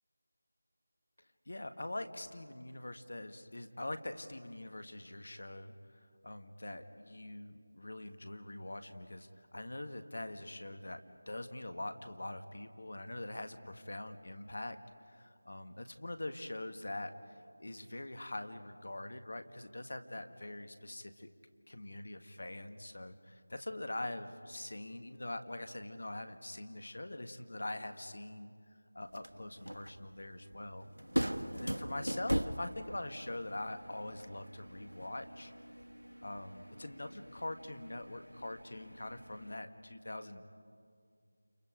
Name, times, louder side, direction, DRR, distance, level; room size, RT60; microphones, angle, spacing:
voice 1, 1.5-5.7 6.2-14.8 15.1-17.1 17.6-21.3 21.7-28.5 28.9-30.9 31.5-35.5 36.2-40.5, left 1 dB, 60° left, 8 dB, 1.7 m, -43 dB
sound 1, 29.0-39.6, equal, 85° right, 1.3 m, -41 dB
30.0 x 28.5 x 5.1 m, 2.2 s
figure-of-eight pair, 165°, 0 cm